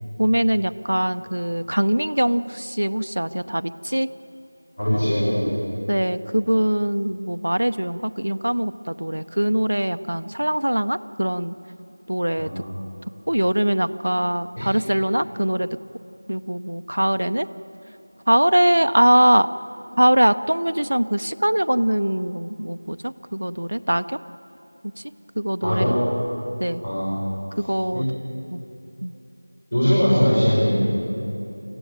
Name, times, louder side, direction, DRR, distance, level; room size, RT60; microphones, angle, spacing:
voice 1, 0.2-4.1 5.9-11.5 12.1-12.5 13.3-15.7 16.3-17.5 18.3-19.5 20.0-24.2 25.4-26.0 26.6-26.8 27.7-28.0 28.5-28.6 29.0-29.1, right 1 dB, 65° right, 11 dB, 0.7 m, -22 dB
voice 2, 4.8-5.5 12.4-12.7 14.6-14.7 25.6-26.0 26.8-27.2 27.9-28.0 29.7-30.7, equal, 45° left, -7 dB, 6.2 m, -21 dB
25.5 x 15.0 x 8.8 m, 2.9 s
figure-of-eight pair, 180°, 0 cm